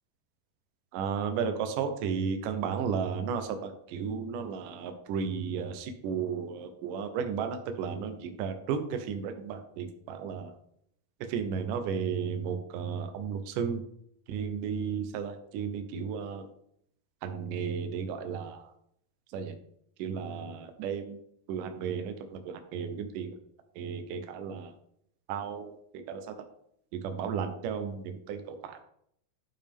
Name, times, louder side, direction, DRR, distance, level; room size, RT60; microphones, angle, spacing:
voice 1, 0.9-10.5 11.3-13.8 14.3-16.5 17.2-18.7 19.3-19.5 20.0-21.2 21.5-23.4 23.7-24.7 25.3-26.3 26.9-28.8, right 6 dB, 90° right, 6 dB, 1.8 m, -34 dB
11.5 x 5.3 x 3.5 m, 0.70 s
omnidirectional pair, 5.0 m